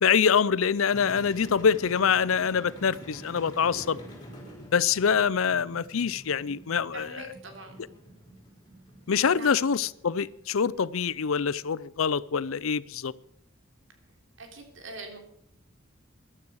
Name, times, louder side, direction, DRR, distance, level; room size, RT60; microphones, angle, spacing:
voice 1, 0.0-4.0 4.7-7.3 9.1-13.1, left 6 dB, 80° left, 0.5 m, -25 dB
sound 1, 0.9-11.6, right 1 dB, 20° left, 4.5 m, -47 dB
voice 2, 6.9-8.1 9.3-9.6 14.4-15.2, right 2 dB, 65° right, 3.3 m, -43 dB
14.5 x 12.0 x 6.3 m
head